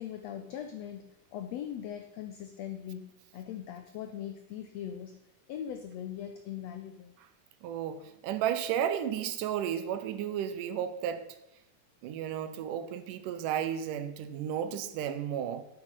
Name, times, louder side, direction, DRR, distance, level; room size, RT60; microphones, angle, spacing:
voice 1, 0.0-5.2 5.5-7.1, left 10 dB, 90° left, 7 dB, 1.5 m, -40 dB
voice 2, 7.6-11.3 12.0-15.6, right 9 dB, 80° right, 11 dB, 2.2 m, -33 dB
9.7 x 8.3 x 5.4 m, 0.87 s
omnidirectional pair, 3.8 m